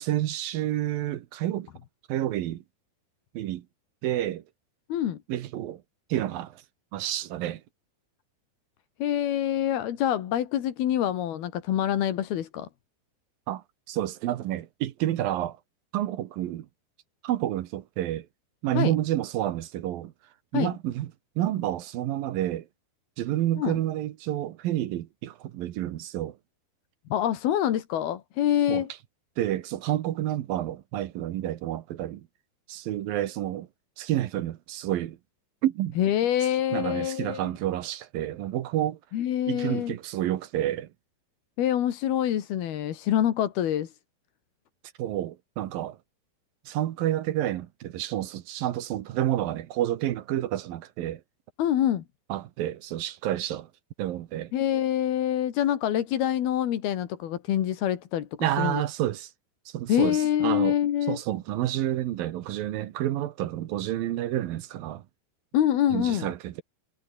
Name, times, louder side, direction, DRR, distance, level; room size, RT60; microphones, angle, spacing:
voice 1, 0.0-1.7 2.1-2.6 3.3-3.6 4.0-4.4 5.3-5.8 6.1-6.6 6.9-7.6 13.5-15.6 15.9-16.7 17.2-18.3 18.6-20.1 20.5-21.1 21.4-22.7 23.2-26.4 28.7-28.8 29.4-32.3 32.7-33.7 34.0-35.2 35.6-36.0 36.7-39.0 39.5-40.9 45.0-46.0 46.7-51.2 52.3-53.7 54.0-54.5 58.4-59.3 59.7-60.8 61.1-65.0 65.9-66.6, right 13 dB, 65° right, 2.6 m, -29 dB
voice 2, 9.0-12.7 18.7-18.9 20.5-20.7 23.6-23.8 27.1-28.9 36.0-37.4 39.1-40.0 41.6-43.9 51.6-52.0 54.5-58.8 59.9-61.2 65.5-66.3, left 11 dB, 65° left, 3.7 m, -26 dB
omnidirectional pair, 4.9 m